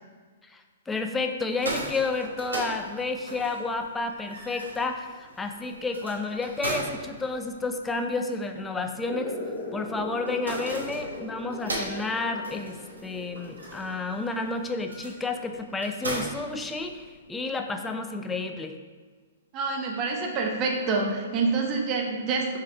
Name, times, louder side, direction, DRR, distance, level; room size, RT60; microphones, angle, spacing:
voice 1, 0.5-9.4 9.7-12.8 13.0-18.8, left 3 dB, 10° left, 5 dB, 0.3 m, -31 dB
sound 1, 1.4-17.3, right 1 dB, 80° right, 1.0 m, -39 dB
sound 2, 9.1-16.2, left 2 dB, 30° left, 0.7 m, -40 dB
voice 2, 19.5-22.5, right 4 dB, 30° right, 0 dB, 0.6 m, -27 dB
3.6 x 3.3 x 4.2 m, 1.5 s
figure-of-eight pair, 115°, 0 cm